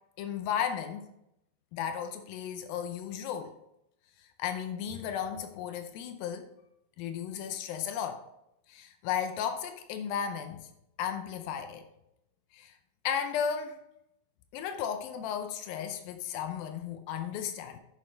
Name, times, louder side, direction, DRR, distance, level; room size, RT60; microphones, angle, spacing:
voice 1, 0.2-1.1 1.7-3.6 4.4-6.5 7.0-8.2 8.7-10.6 11.0-11.9 12.5-12.7 13.0-13.8 14.5-17.8, left 8 dB, 85° left, 7 dB, 2.5 m, -34 dB
9.7 x 6.3 x 3.3 m, 0.81 s
omnidirectional pair, 4.1 m